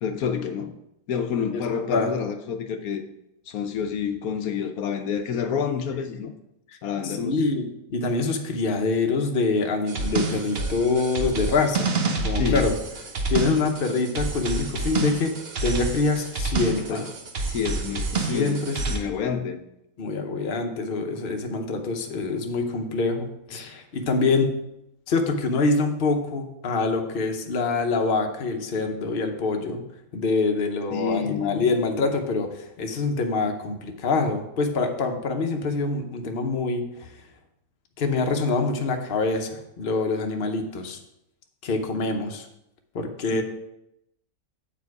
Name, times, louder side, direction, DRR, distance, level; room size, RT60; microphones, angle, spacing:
voice 1, 0.0-0.7 1.1-3.0 3.5-6.3 6.8-7.4 12.4-12.7 16.7-17.1 17.5-19.6 30.9-31.7 43.3-43.4, left 7 dB, 75° left, 6 dB, 1.1 m, -28 dB
voice 2, 1.5-2.1 7.0-7.7 7.9-11.9 12.2-12.7 13.3-15.3 15.6-17.0 18.2-18.8 20.0-24.5 25.1-29.8 30.1-37.1 38.0-41.0 41.6-42.5 42.9-43.4, left 3 dB, 45° left, 4 dB, 0.9 m, -25 dB
sound 1, 9.9-19.0, right 3 dB, 50° right, 1.0 m, -28 dB
8.2 x 4.7 x 4.7 m, 0.84 s
omnidirectional pair, 1.6 m